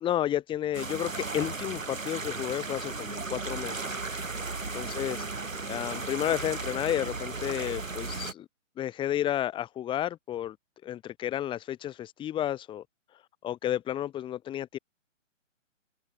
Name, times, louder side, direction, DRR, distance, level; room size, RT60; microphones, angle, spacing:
voice 1, 0.0-4.0 4.7-5.2 5.7-8.5 8.8-10.6 10.8-12.8 13.4-14.8, left 11 dB, 15° left, 2.1 m, -31 dB
sound 1, 0.7-8.3, right 3 dB, 90° right, 6.9 m, -35 dB
figure-of-eight pair, 140°, 38 cm